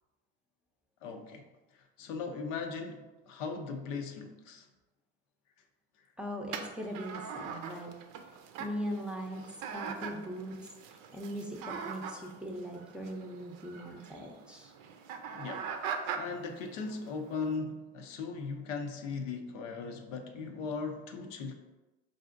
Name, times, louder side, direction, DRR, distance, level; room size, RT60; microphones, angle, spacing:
voice 1, 1.0-1.4 1.7-4.7 15.3-15.7 16.1-21.5, left 4 dB, 85° left, 4 dB, 0.6 m, -38 dB
voice 2, 6.2-7.9 8.6-9.4 9.7-10.5 10.9-14.7, equal, 5° right, -1 dB, 0.5 m, -40 dB
sound 1, 6.5-17.6, right 6 dB, 65° right, 0.5 m, -42 dB
4.7 x 2.6 x 2.5 m, 1.1 s
supercardioid pair, 85°, 36 cm